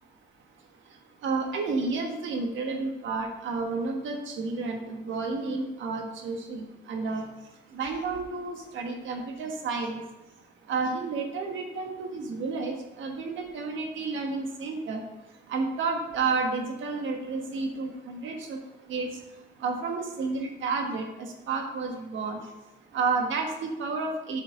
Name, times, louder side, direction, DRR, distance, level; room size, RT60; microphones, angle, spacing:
voice 1, 1.2-7.2 7.7-10.0 10.7-15.0 15.5-18.6 18.9-19.1 19.6-22.4 22.9-24.4, right 4 dB, 75° right, 3 dB, 1.5 m, -31 dB
9.1 x 6.2 x 3.9 m, 1.0 s
cardioid pair, 90°, 20 cm